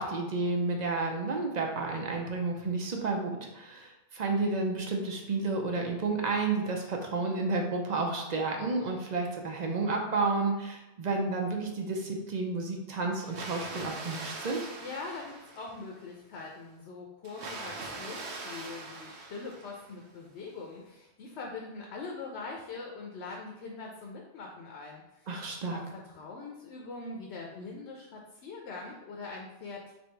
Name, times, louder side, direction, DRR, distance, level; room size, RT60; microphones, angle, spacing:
voice 1, 0.0-14.6 25.3-25.8, right 3 dB, 50° right, 1 dB, 0.6 m, -31 dB
Water, 13.2-16.0 17.2-20.1, right 3 dB, 80° right, 0.9 m, -42 dB
voice 2, 14.8-25.3 25.7-29.9, left 3 dB, 85° left, 0 dB, 0.9 m, -42 dB
3.5 x 2.7 x 4.4 m, 0.94 s
omnidirectional pair, 1.1 m